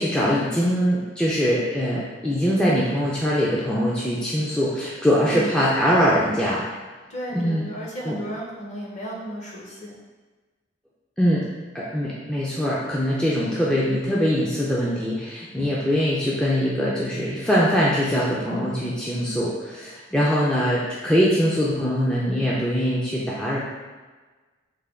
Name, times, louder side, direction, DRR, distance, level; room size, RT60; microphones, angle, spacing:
voice 1, 0.0-6.6 7.3-7.6 8.0-8.2 11.2-11.4 11.7-23.6, equal, 5° left, -7 dB, 0.4 m, -22 dB
voice 2, 5.2-5.6 7.1-10.0, equal, 40° left, -4 dB, 0.7 m, -34 dB
3.2 x 2.2 x 3.5 m, 1.3 s
head